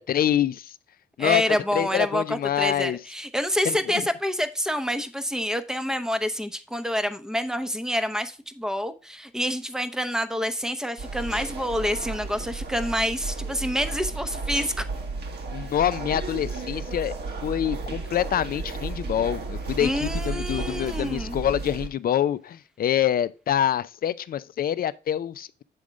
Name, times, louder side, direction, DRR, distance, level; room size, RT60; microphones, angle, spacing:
voice 1, 0.1-0.7 1.2-3.0 3.7-3.8 15.5-17.1 17.4-25.6, left 10 dB, 50° left, 0.5 m, -26 dB
voice 2, 1.2-14.9 19.8-21.4, equal, 5° right, 0.7 m, -27 dB
sound 1, 11.0-21.9, right 3 dB, 55° right, 1.4 m, -33 dB
7.6 x 3.6 x 5.1 m
cardioid pair, 90°, 20 cm